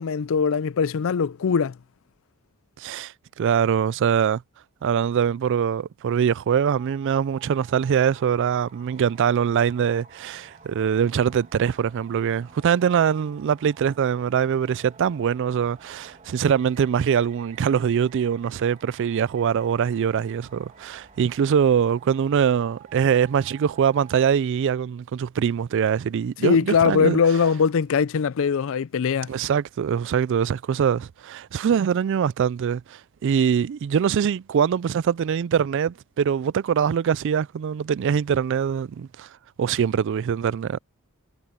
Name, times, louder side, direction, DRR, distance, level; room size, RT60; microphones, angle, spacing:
voice 1, 0.0-1.8 26.4-29.3, left 6 dB, 60° left, 0.4 m, -21 dB
voice 2, 2.8-4.4 4.8-27.2 29.3-39.3 39.6-40.8, right 7 dB, 55° right, 0.3 m, -23 dB
sound 1, 6.7-24.3, right 5 dB, 35° right, 1.9 m, -51 dB
head